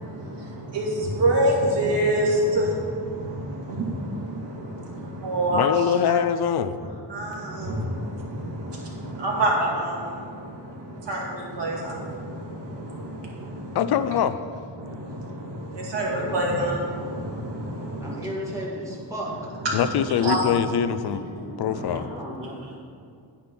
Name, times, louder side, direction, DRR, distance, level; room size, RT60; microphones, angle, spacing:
voice 1, 0.0-5.7 7.1-13.8 14.8-18.6 19.5-20.6 21.0-22.0 22.4-22.8, right 1 dB, 65° right, -3 dB, 2.1 m, -28 dB
voice 2, 5.5-6.8 13.7-14.4 19.7-21.2 21.6-22.1, left 9 dB, 60° left, 13 dB, 0.5 m, -23 dB
voice 3, 18.0-19.3 22.1-22.8, equal, 5° right, -5 dB, 2.3 m, -34 dB
9.5 x 4.4 x 6.0 m, 2.4 s
cardioid pair, 90°, 45 cm